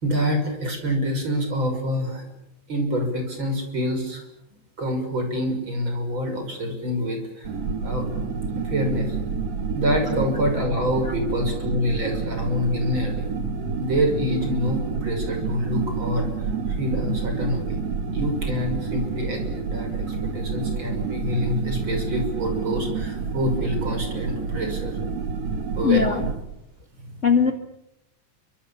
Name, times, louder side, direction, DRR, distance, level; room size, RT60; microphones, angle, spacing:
voice 1, 0.0-2.3 2.7-4.2 4.8-7.5 7.8-8.0 8.6-9.2 9.7-13.3 13.8-17.8 18.1-25.0 25.3-26.1, equal, 35° right, 5 dB, 6.8 m, -26 dB
sound 1, 7.4-26.4, right 5 dB, 55° right, 3.5 m, -28 dB
voice 2, 25.8-26.3 27.2-27.5, left 6 dB, 30° left, 6 dB, 1.7 m, -20 dB
29.0 x 25.0 x 7.2 m, 0.83 s
omnidirectional pair, 3.6 m